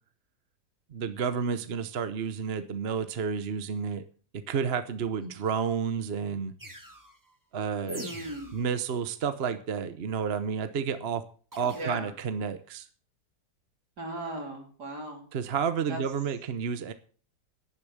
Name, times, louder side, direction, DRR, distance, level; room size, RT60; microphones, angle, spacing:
voice 1, 0.9-4.0 4.3-6.5 7.5-8.1 8.5-11.3 11.6-12.9 15.3-16.9, right 6 dB, 45° right, 11 dB, 0.9 m, -31 dB
sound 1, 6.6-7.2 7.9-8.7 11.5-11.9, right 1 dB, 10° right, 1.9 m, -42 dB
voice 2, 7.9-8.5 11.7-12.1 14.0-15.2 15.9-16.0, right 1 dB, 60° right, 2 dB, 4.1 m, -38 dB
11.0 x 10.5 x 6.7 m, 0.40 s
omnidirectional pair, 2.0 m